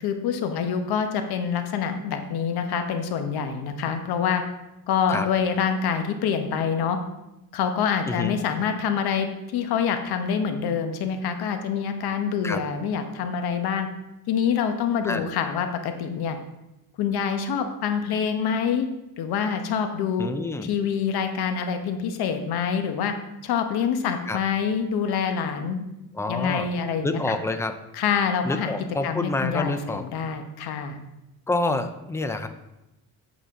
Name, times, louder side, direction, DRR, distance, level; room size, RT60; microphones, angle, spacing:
voice 1, 0.0-4.4 4.9-7.0 7.5-13.9 14.3-16.4 17.0-18.9 19.2-20.3 20.6-23.1 23.4-25.9 26.3-27.3 27.9-28.7 29.0-31.0, left 7 dB, 85° left, 6 dB, 1.1 m, -26 dB
voice 2, 8.1-8.4 12.4-12.6 15.0-15.2 20.2-20.7 24.3-24.4 26.1-26.7 27.0-27.7 28.4-30.0 31.5-32.5, left 2 dB, 10° left, 8 dB, 0.3 m, -27 dB
8.3 x 7.3 x 3.7 m, 0.94 s
cardioid pair, 175°, 37 cm